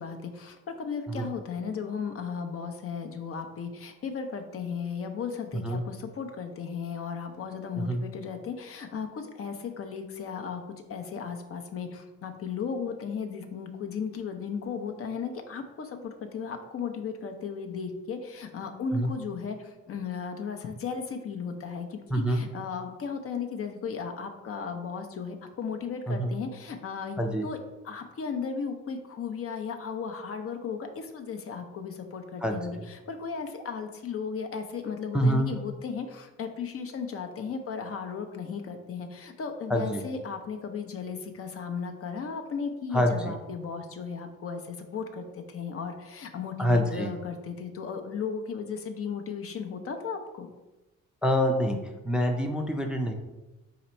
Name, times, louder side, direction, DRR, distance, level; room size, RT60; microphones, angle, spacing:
voice 1, 0.0-27.6 27.8-50.5, left 6 dB, 50° left, 5 dB, 0.6 m, -35 dB
voice 2, 5.5-5.8 7.7-8.0 18.9-19.1 22.1-22.4 26.1-26.3 27.2-27.5 32.4-32.8 35.1-35.5 39.7-40.0 42.9-43.4 46.6-47.1 51.2-51.8 52.0-53.1, equal, 5° right, 3 dB, 0.5 m, -26 dB
4.0 x 2.9 x 4.3 m, 1.1 s
cardioid pair, 90°, 30 cm